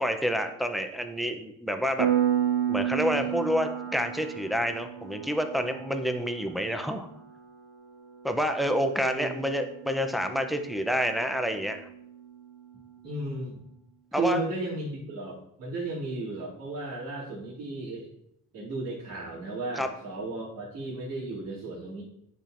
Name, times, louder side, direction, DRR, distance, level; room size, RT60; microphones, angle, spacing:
voice 1, 0.0-2.1 2.7-7.1 8.2-11.8 14.1-14.4 19.7-19.9, equal, ahead, 6 dB, 0.5 m, -28 dB
Piano, 2.0-12.4, right 10 dB, 65° right, 0.8 m, -33 dB
voice 2, 13.0-13.6 14.1-18.1 18.5-22.0, right 3 dB, 85° right, -10 dB, 2.6 m, -34 dB
10.0 x 4.3 x 2.5 m, 0.75 s
cardioid pair, 115°, 33 cm